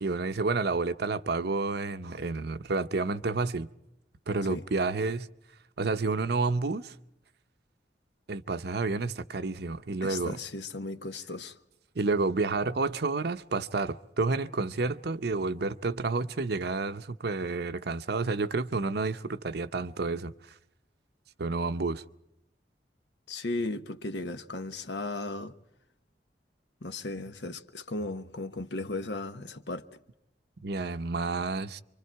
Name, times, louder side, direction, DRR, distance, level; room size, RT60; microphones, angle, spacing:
voice 1, 0.0-3.7 4.3-5.3 5.8-7.0 8.3-10.4 11.9-20.3 21.4-22.0 27.1-27.2 30.6-31.8, right 3 dB, 65° right, 0.8 m, -30 dB
voice 2, 10.0-11.6 23.3-25.5 26.8-29.8, left 2 dB, 70° left, 1.1 m, -36 dB
27.5 x 24.5 x 4.6 m
head